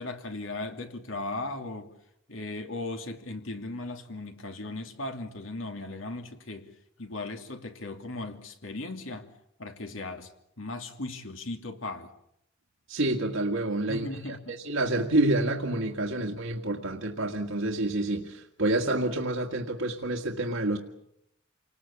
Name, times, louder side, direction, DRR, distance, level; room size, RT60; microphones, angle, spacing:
voice 1, 0.0-1.9 2.3-6.7 7.0-9.3 9.6-10.3 10.6-12.1 13.9-14.6 16.1-16.3, left 2 dB, 70° left, 2.8 m, -37 dB
voice 2, 12.9-20.8, right 2 dB, 75° right, 1.9 m, -28 dB
29.0 x 19.5 x 8.6 m
head